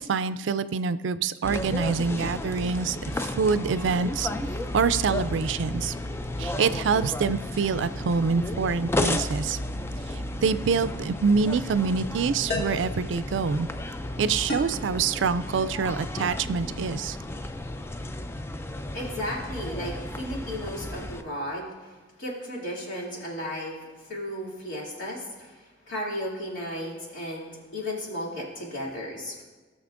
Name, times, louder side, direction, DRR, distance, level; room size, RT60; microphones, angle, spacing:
voice 1, 0.0-4.3 4.7-5.9 6.4-9.6 10.4-13.7 14.2-17.2, right 5 dB, 80° right, 14 dB, 0.4 m, -26 dB
sound 1, 1.4-21.2, left 1 dB, 15° left, 0.3 m, -33 dB
sound 2, 10.9-11.1 12.5-12.9 14.5-14.9, left 1 dB, 55° left, 1.8 m, -32 dB
voice 2, 18.9-21.9 22.2-23.8 24.1-29.4, equal, 80° left, -4 dB, 2.7 m, -34 dB
18.5 x 6.4 x 2.5 m, 1.3 s
head